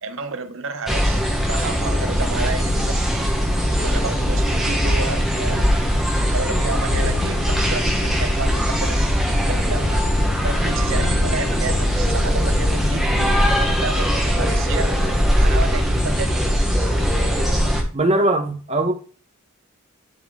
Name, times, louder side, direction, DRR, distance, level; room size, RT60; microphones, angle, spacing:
voice 1, 0.0-3.0 3.8-5.8 6.2-9.0 9.3-10.1 10.4-13.0 13.7-15.0 15.4-16.5, right 4 dB, 60° right, 9 dB, 0.8 m, -31 dB
sound 1, 0.9-17.8, equal, ahead, 1.2 m, -20 dB
sound 2, 6.9-13.4, left 4 dB, 45° left, 0.4 m, -32 dB
voice 2, 17.9-18.9, right 1 dB, 30° right, 6 dB, 1.0 m, -20 dB
11.5 x 4.7 x 2.3 m, 0.38 s
head